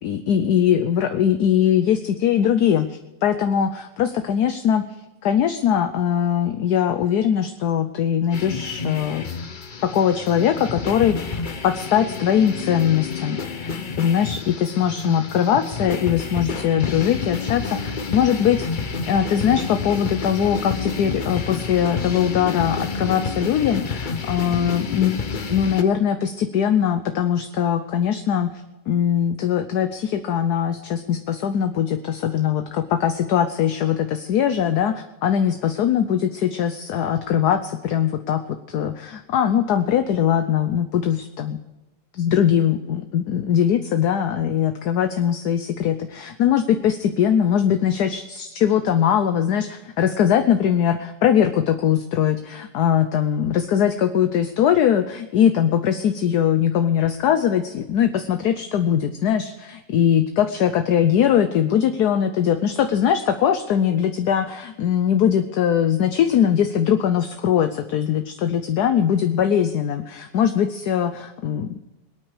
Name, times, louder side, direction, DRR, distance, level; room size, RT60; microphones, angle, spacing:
voice 1, 0.0-4.8 5.2-9.3 9.8-28.5 28.9-41.6 42.1-71.8, left 9 dB, 65° left, 8 dB, 1.3 m, -21 dB
sound 1, 8.3-25.8, left 5 dB, 40° left, 0.8 m, -29 dB
25.0 x 9.1 x 4.9 m, 1.0 s
omnidirectional pair, 1.9 m